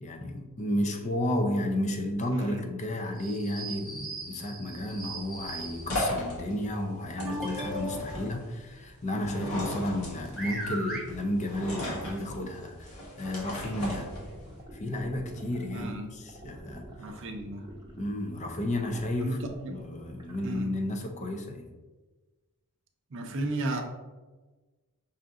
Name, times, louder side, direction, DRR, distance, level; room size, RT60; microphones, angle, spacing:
voice 1, 0.0-12.9 13.2-14.1 14.7-16.9 17.9-19.4 19.7-21.7, left 1 dB, 30° left, 4 dB, 0.5 m, -32 dB
voice 2, 2.3-2.7 15.7-16.2 17.0-17.7 19.2-19.4 19.6-19.8 20.4-20.7 23.1-23.8, right 2 dB, 60° right, 4 dB, 0.6 m, -34 dB
sound 1, 3.2-6.2 7.3-8.2 10.0-10.1 10.4-11.0 12.2-12.3 12.8-12.9 13.7-13.8, right 1 dB, ahead, 1.0 m, -38 dB
sound 2, 4.7-14.6, left 1 dB, 80° left, 1.4 m, -37 dB
sound 3, 14.1-20.6, right 1 dB, 20° right, 0.8 m, -48 dB
5.6 x 2.5 x 3.6 m, 1.2 s
head